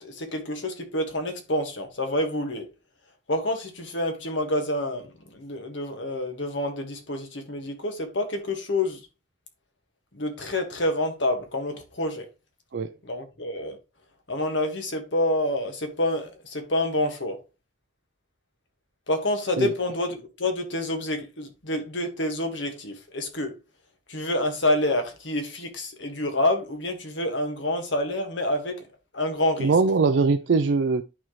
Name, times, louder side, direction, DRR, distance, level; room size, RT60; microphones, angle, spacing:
voice 1, 0.0-2.7 3.3-9.0 10.1-12.3 13.0-13.8 14.3-17.4 19.1-23.5 24.1-28.7 29.1-29.7, left 1 dB, 80° left, 1.7 m, -28 dB
voice 2, 29.6-31.0, right 4 dB, 70° right, 0.5 m, -21 dB
11.0 x 4.5 x 3.1 m
head